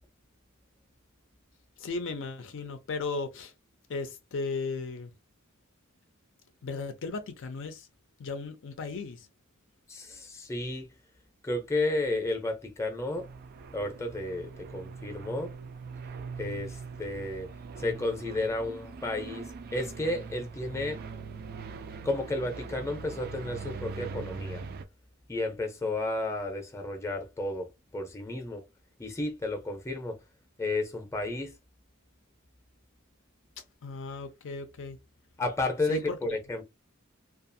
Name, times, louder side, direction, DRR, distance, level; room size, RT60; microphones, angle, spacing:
voice 1, 1.8-3.5 3.9-5.1 6.6-7.9 8.2-9.3 33.8-35.0 35.9-36.4, left 4 dB, 60° left, 0.4 m, -36 dB
voice 2, 9.9-10.9 11.4-13.3 13.7-15.5 16.4-17.5 17.8-21.0 22.0-24.6 25.3-27.7 27.9-28.6 29.0-30.2 30.6-31.5 35.4-36.6, left 2 dB, 15° left, 0.6 m, -32 dB
sound 1, 13.1-24.9, right 4 dB, 45° right, 0.3 m, -42 dB
2.4 x 2.4 x 2.6 m
head